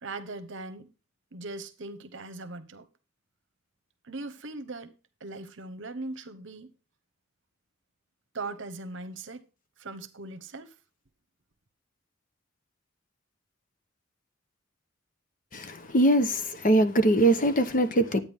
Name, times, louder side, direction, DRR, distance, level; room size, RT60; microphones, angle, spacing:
voice 1, 0.0-0.9 1.3-2.9 4.0-4.9 5.2-6.7 8.3-9.5 9.8-10.7, right 2 dB, 65° right, 1.0 m, -39 dB
voice 2, 15.5-18.2, right 1 dB, 40° left, 0.9 m, -22 dB
12.0 x 8.8 x 3.5 m
head